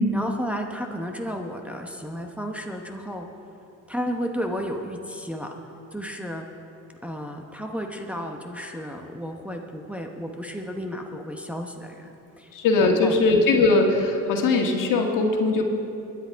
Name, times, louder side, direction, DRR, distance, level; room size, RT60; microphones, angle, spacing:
voice 1, 0.1-3.3 3.9-5.5 5.9-6.5 7.0-12.1 12.4-12.5 13.0-13.2, equal, 5° right, 1 dB, 1.0 m, -32 dB
voice 2, 12.5-15.6, left 3 dB, 65° left, 2 dB, 1.8 m, -20 dB
21.5 x 10.0 x 4.6 m, 2.7 s
cardioid pair, 120°, 34 cm